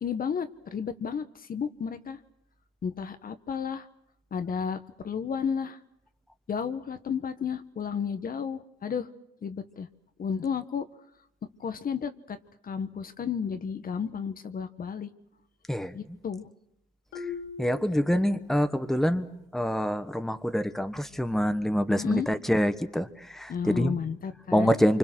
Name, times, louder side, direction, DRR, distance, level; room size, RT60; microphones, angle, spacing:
voice 1, 0.0-2.2 2.8-3.9 4.3-5.8 6.5-9.1 9.4-9.9 10.2-10.8 11.6-12.4 12.6-15.1 15.9-16.5 22.0-22.3 23.5-24.7, left 6 dB, 45° left, 10 dB, 1.2 m, -32 dB
Marimba xylophone, 17.1-18.9, left 5 dB, 75° left, 3.3 m, -41 dB
voice 2, 17.6-24.0 24.5-25.0, equal, ahead, 10 dB, 1.3 m, -26 dB
26.5 x 25.0 x 6.2 m, 0.81 s
cardioid pair, 90°, 20 cm